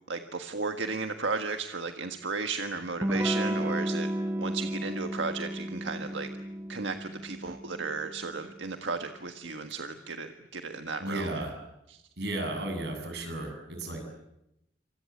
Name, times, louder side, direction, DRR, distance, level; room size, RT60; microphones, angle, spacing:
voice 1, 0.1-4.1 4.4-6.3 6.7-11.3 11.9-12.0, right 4 dB, 85° right, 6 dB, 1.5 m, -34 dB
Electric guitar / Strum, 3.0-8.4, right 1 dB, 15° right, 1.1 m, -33 dB
voice 2, 11.0-11.5 12.2-14.0, right 1 dB, 65° right, 5 dB, 7.8 m, -34 dB
27.5 x 25.5 x 8.5 m, 0.88 s
head